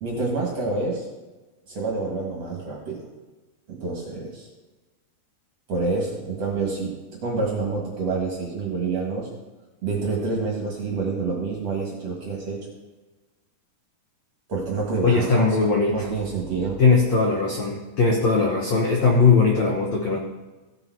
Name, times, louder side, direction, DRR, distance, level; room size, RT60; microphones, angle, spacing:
voice 1, 0.0-1.1 1.7-3.1 3.7-4.5 5.7-6.9 7.2-9.3 9.8-12.6 14.5-15.5 15.9-16.8, right 3 dB, 50° right, -2 dB, 2.0 m, -27 dB
voice 2, 15.0-16.1 16.8-20.2, left 4 dB, 85° left, -1 dB, 1.5 m, -19 dB
16.0 x 7.0 x 4.7 m, 1.2 s
omnidirectional pair, 5.1 m